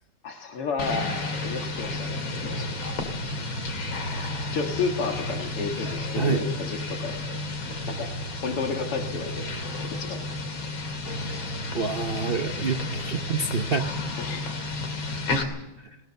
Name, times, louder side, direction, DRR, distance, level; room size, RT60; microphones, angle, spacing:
voice 1, 0.2-3.0 4.5-7.4 7.9-8.1 8.4-9.5 9.8-10.2 10.6-10.7 14.2-14.5 15.3-15.6, left 4 dB, 90° left, 1 dB, 2.8 m, -32 dB
sound 1, 0.8-15.4, left 2 dB, 65° left, 3.3 m, -32 dB
voice 2, 11.7-13.9 15.8-16.0, right 4 dB, 85° right, 5 dB, 0.5 m, -27 dB
20.0 x 19.5 x 6.7 m, 0.98 s
omnidirectional pair, 2.4 m